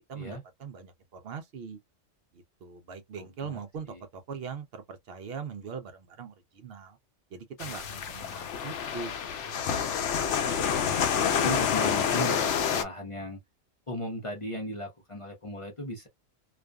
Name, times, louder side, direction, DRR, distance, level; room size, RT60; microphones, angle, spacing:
voice 1, 0.1-1.8 2.3-7.0 7.3-9.7, right 5 dB, 65° right, 0.8 m, -41 dB
voice 2, 3.2-3.6 3.9-4.0 7.7-7.8 11.4-13.4 13.9-16.1, equal, 35° left, 0.6 m, -37 dB
sound 1, 7.6-12.8, left 7 dB, 90° left, 0.9 m, -28 dB
2.4 x 2.3 x 2.2 m
omnidirectional pair, 1.2 m